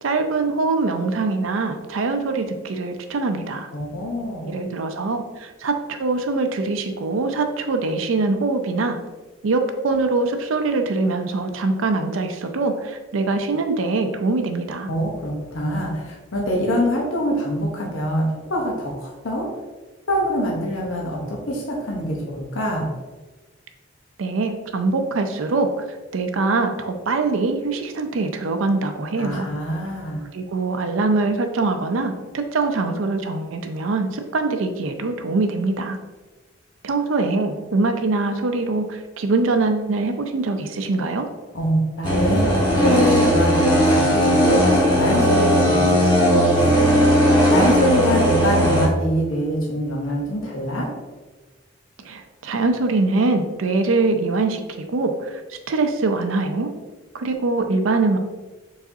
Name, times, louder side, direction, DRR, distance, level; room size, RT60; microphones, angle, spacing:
voice 1, 0.0-3.7 4.4-9.0 9.4-14.9 24.2-29.5 30.3-36.0 36.8-41.3 52.0-56.7 57.1-58.2, right 3 dB, 85° right, 6 dB, 0.5 m, -23 dB
voice 2, 3.7-4.5 14.9-19.5 20.1-22.9 29.2-30.2 41.5-46.9 47.5-50.9, equal, 90° left, -1 dB, 0.9 m, -24 dB
sound 1, 42.0-48.9, equal, 25° left, 1.3 m, -17 dB
4.8 x 4.1 x 2.7 m, 1.2 s
head